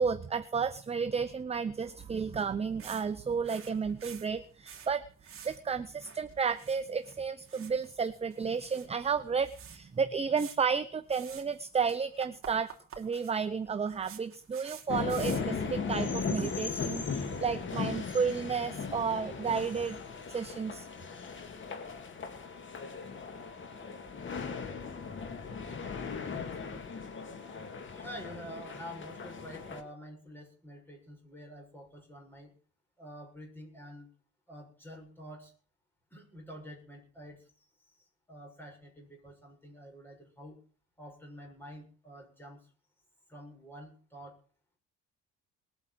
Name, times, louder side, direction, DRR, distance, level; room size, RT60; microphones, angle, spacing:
voice 1, 0.0-12.7 13.0-20.0 20.3-20.9, right 6 dB, 20° right, 11 dB, 0.7 m, -32 dB
sound 1, 2.8-3.1 3.3-4.9 5.2-5.6 5.9-7.2 7.4-8.9 9.1-9.2 9.4-9.8 10.4-10.6 11.1-11.6 11.9-15.6, right 8 dB, 45° right, 3.0 m, -49 dB
sound 2, 14.9-29.8, left 5 dB, 40° left, 2.4 m, -38 dB
voice 2, 27.9-32.5 33.0-34.1 34.5-35.5 36.1-37.4 38.3-40.6 41.0-42.6 43.3-44.4, equal, 5° left, 0 dB, 6.9 m, -48 dB
20.0 x 8.9 x 6.2 m, 0.42 s
cardioid pair, 135°, 30 cm